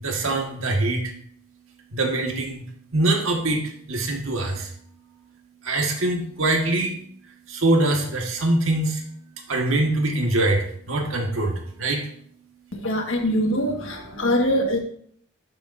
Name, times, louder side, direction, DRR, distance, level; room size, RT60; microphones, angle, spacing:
voice 1, 0.0-1.0 1.9-2.6 2.9-3.6 3.9-4.6 5.7-6.9 7.6-8.9 9.5-10.6 10.9-11.5 11.8-12.0, right 2 dB, 85° right, 2 dB, 1.5 m, -23 dB
voice 2, 12.7-14.8, equal, 75° left, 3 dB, 1.5 m, -23 dB
12.0 x 6.7 x 2.6 m, 0.63 s
head